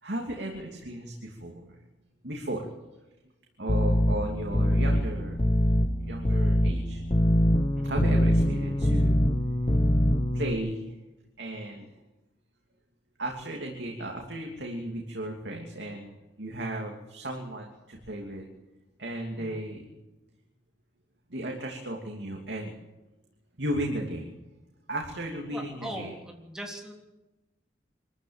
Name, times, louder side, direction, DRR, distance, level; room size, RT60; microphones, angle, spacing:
voice 1, 0.0-1.8 2.2-2.7 3.6-5.4 6.0-7.0 7.8-9.2 10.3-10.9 11.4-11.9 13.2-18.5 19.0-19.9 21.3-22.7 23.6-24.3 24.9-26.1, right 1 dB, 75° right, 1 dB, 2.9 m, -35 dB
sound 1, 3.7-10.5, equal, 30° left, 1.1 m, -24 dB
voice 2, 25.5-26.9, right 1 dB, 5° right, 1 dB, 3.4 m, -40 dB
24.0 x 14.0 x 9.0 m, 1.0 s
head